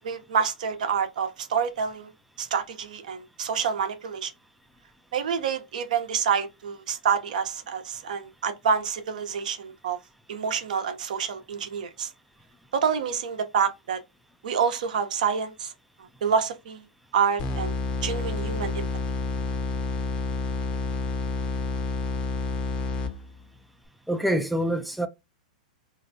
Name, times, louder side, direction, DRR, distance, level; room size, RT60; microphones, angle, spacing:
voice 1, 0.0-2.1 2.4-4.3 5.1-10.0 10.3-12.1 12.7-14.0 14.4-15.7 16.2-16.8 17.1-17.7 18.0-18.9, right 6 dB, 70° right, 0.7 m, -27 dB
sound 1, 17.4-23.4, left 3 dB, 30° left, 0.7 m, -29 dB
voice 2, 24.1-25.1, equal, ahead, 0.4 m, -25 dB
3.2 x 2.7 x 2.6 m
hypercardioid pair, 115°, 4 cm